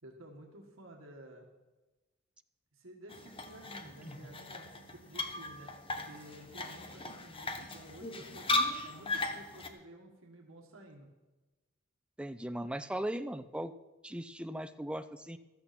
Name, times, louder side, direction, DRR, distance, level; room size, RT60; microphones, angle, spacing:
voice 1, 0.0-1.5 2.7-5.7 6.0-8.5 8.8-11.1, right 1 dB, 70° right, 1 dB, 1.8 m, -53 dB
sound 1, 3.1-9.7, left 2 dB, 25° left, 1.1 m, -37 dB
voice 2, 12.2-13.7 14.0-15.4, right 1 dB, 5° right, 10 dB, 0.5 m, -38 dB
15.0 x 13.0 x 4.3 m, 1.1 s
head